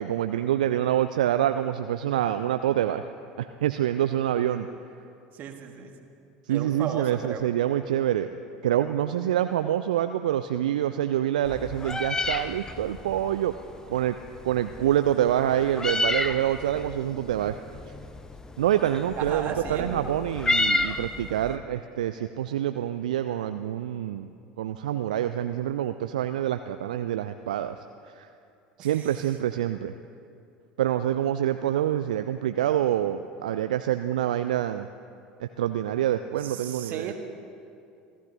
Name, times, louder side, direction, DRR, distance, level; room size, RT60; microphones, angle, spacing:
voice 1, 0.0-3.1 3.4-4.7 6.5-8.3 8.6-13.5 13.9-14.1 14.4-17.6 18.6-24.3 24.6-27.8 28.2-28.3 28.8-29.9 30.8-34.9 35.4-37.1, right 11 dB, 70° right, 9 dB, 0.4 m, -26 dB
voice 2, 5.3-5.9 6.5-7.4 19.2-20.0 28.8-29.1 36.4-37.1, right 8 dB, 40° right, 5 dB, 1.5 m, -35 dB
Meow, 11.4-21.6, left 2 dB, 15° left, 0.8 m, -31 dB
27.5 x 14.5 x 2.9 m, 2.5 s
figure-of-eight pair, 70°, 4 cm